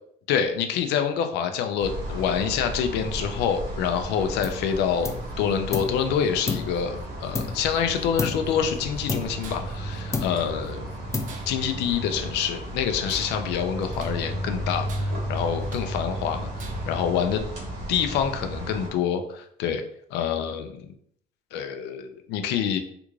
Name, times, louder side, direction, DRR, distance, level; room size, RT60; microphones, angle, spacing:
voice 1, 0.3-10.9 11.5-16.5 16.9-17.4 17.9-19.8 20.1-20.9 21.5-22.8, left 8 dB, 90° left, 8 dB, 0.5 m, -26 dB
sound 1, 1.8-18.9, right 1 dB, 80° right, 1.2 m, -34 dB
sound 2, 4.4-4.7 5.0-6.0 6.5-7.8 8.2-8.6 9.1-9.8 10.1-10.6 11.1-11.7, left 4 dB, 15° left, 0.4 m, -32 dB
Tools, 9.4-9.8 10.1-10.8 11.2-12.4 12.9-14.3 14.8-16.0 16.5-17.0, right 5 dB, 50° right, 0.5 m, -47 dB
3.4 x 2.5 x 3.1 m, 0.67 s
cardioid pair, 110°, 17 cm